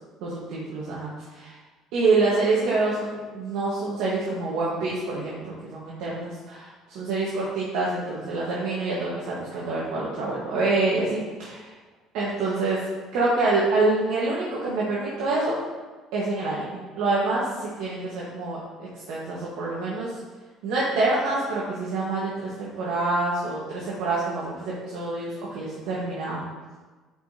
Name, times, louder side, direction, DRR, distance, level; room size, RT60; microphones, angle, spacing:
voice 1, 0.2-1.6 1.9-11.7 12.1-12.8 13.1-15.6 16.1-18.6 19.1-20.1 20.6-26.4, right 3 dB, 80° right, -6 dB, 1.6 m, -26 dB
9.7 x 5.0 x 3.0 m, 1.3 s
supercardioid pair, 95°, 0 cm